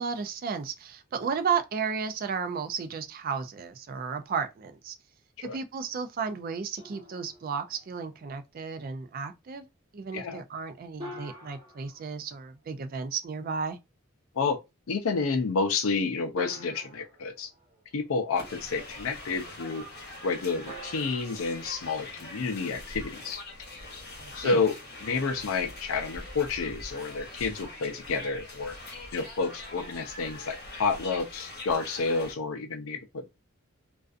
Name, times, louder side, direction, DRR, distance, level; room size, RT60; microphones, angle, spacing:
voice 1, 0.0-5.0 5.4-9.6 9.9-13.8 24.2-24.6, right 6 dB, 45° right, 0.3 m, -33 dB
sound 1, 6.8-8.2 11.0-13.0 14.7-14.8 16.4-18.2 20.7-22.7, equal, 20° right, 1.0 m, -46 dB
voice 2, 14.9-17.5 17.9-19.9 20.2-23.4 24.3-28.7 29.1-33.3, left 4 dB, 85° left, 0.5 m, -30 dB
sound 2, 18.4-32.3, left 2 dB, 50° left, 0.8 m, -43 dB
2.5 x 2.3 x 2.4 m
head